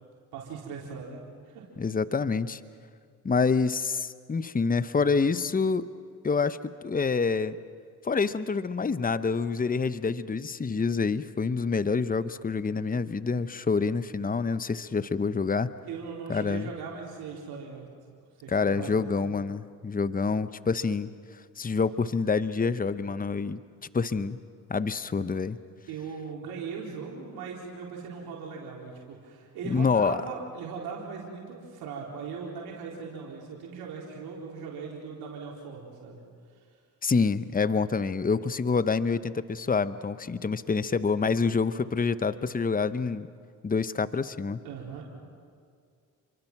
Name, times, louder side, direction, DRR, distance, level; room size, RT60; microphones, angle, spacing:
voice 1, 0.3-1.2 1.5-1.6 15.9-17.9 18.4-19.3 25.9-36.2 36.5-36.6 44.6-45.0, right 5 dB, 85° right, -2 dB, 4.1 m, -39 dB
voice 2, 1.8-2.6 3.2-5.9 6.2-7.6 8.0-15.7 16.3-16.7 18.5-21.1 21.6-23.6 23.9-24.4 24.7-25.6 29.6-30.2 37.0-43.3 43.6-44.6, left 4 dB, 25° left, 14 dB, 0.9 m, -27 dB
29.0 x 24.0 x 6.0 m, 2.1 s
supercardioid pair, 60°, 36 cm